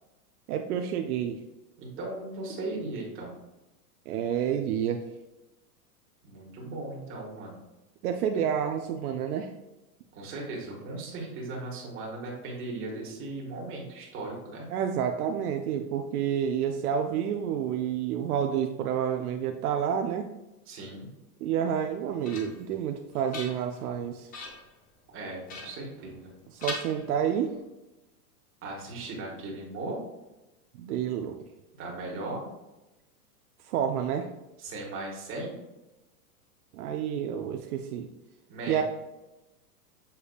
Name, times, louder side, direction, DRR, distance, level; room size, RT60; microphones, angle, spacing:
voice 1, 0.5-1.4 4.1-5.1 8.0-9.5 14.7-20.2 21.4-24.3 26.5-27.5 30.8-31.4 33.6-34.3 36.7-38.1 38.7-38.8, right 8 dB, 70° right, 4 dB, 0.6 m, -29 dB
voice 2, 1.8-3.3 6.2-7.6 10.1-14.7 20.7-21.1 25.1-26.3 28.6-30.0 31.8-32.4 34.6-35.5 38.5-38.8, right 2 dB, 25° right, -2 dB, 1.5 m, -37 dB
sound 1, 21.7-22.7 23.1-23.9 24.3-24.7 25.5-26.3 26.6-27.6, left 3 dB, 20° left, 0.6 m, -41 dB
6.8 x 3.3 x 2.3 m, 1.0 s
hypercardioid pair, 135°, 46 cm